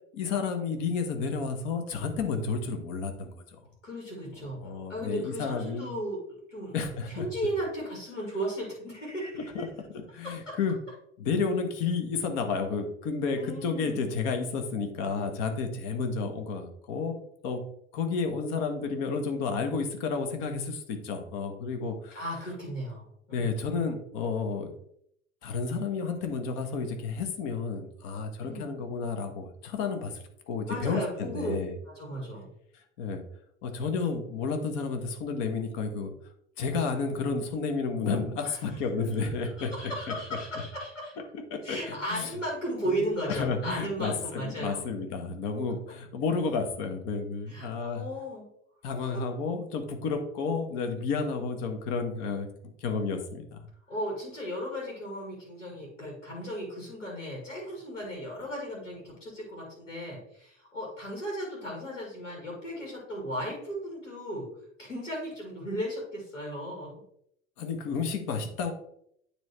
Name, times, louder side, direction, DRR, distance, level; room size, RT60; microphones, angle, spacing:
voice 1, 0.1-3.4 4.6-5.9 6.7-7.3 9.4-10.8 11.2-17.6 17.9-22.2 23.3-24.7 25.4-31.7 33.0-33.2 33.6-36.1 36.6-39.7 40.1-40.2 41.3-42.3 42.9-48.1 48.8-52.5 52.8-53.6 67.6-68.7, left 4 dB, 55° left, 6 dB, 1.4 m, -31 dB
voice 2, 3.8-4.6 4.9-6.2 6.5-6.7 7.1-9.7 13.4-14.1 22.1-23.6 28.4-28.7 30.6-31.6 31.9-32.5 38.4-38.6 39.6-41.1 41.6-44.9 47.5-48.5 49.1-49.2 53.9-64.5 64.8-66.9, equal, 85° left, -2 dB, 2.2 m, -35 dB
9.3 x 3.3 x 4.4 m, 0.72 s
figure-of-eight pair, 70°, 36 cm